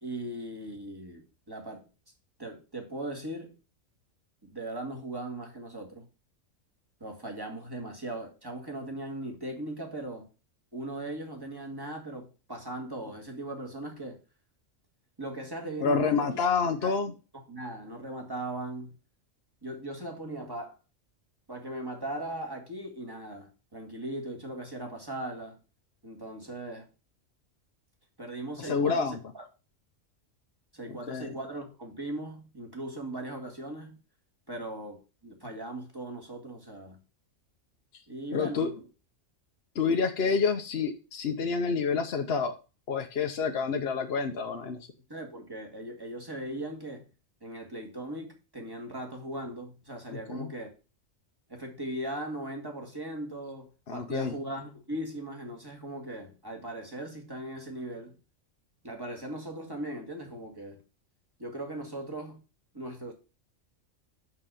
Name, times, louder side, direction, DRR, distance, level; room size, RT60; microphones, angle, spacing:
voice 1, 0.0-1.9 2.4-3.5 4.4-6.1 7.0-10.3 10.7-14.2 15.2-16.3 16.8-16.9 17.5-18.9 19.6-20.8 21.5-25.6 26.0-26.9 28.2-29.4 30.7-34.0 34.5-37.0 38.1-38.9 45.1-47.1 47.4-50.7 51.5-58.2 58.8-60.8 61.4-62.4 62.7-63.1, right 1 dB, 15° right, 2.1 m, -39 dB
voice 2, 15.8-17.1 28.6-29.1 31.1-31.3 38.3-38.7 39.7-42.5 42.9-44.9 50.1-50.5 53.9-54.3, left 5 dB, 55° left, 1.0 m, -28 dB
6.0 x 5.7 x 6.7 m
omnidirectional pair, 1.3 m